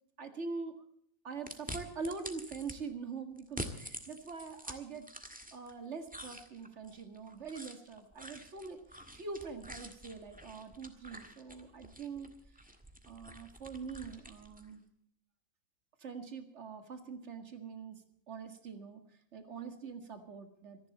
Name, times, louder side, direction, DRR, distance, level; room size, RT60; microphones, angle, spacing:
voice 1, 0.2-0.8 1.2-5.1 5.5-12.3 13.1-14.8 16.0-19.0 19.3-20.8, right 4 dB, 50° right, 7 dB, 2.1 m, -44 dB
sound 1, 1.5-2.8 3.4-5.7 6.1-14.7, equal, 5° right, 1.6 m, -47 dB
26.0 x 11.0 x 4.2 m, 0.66 s
omnidirectional pair, 1.5 m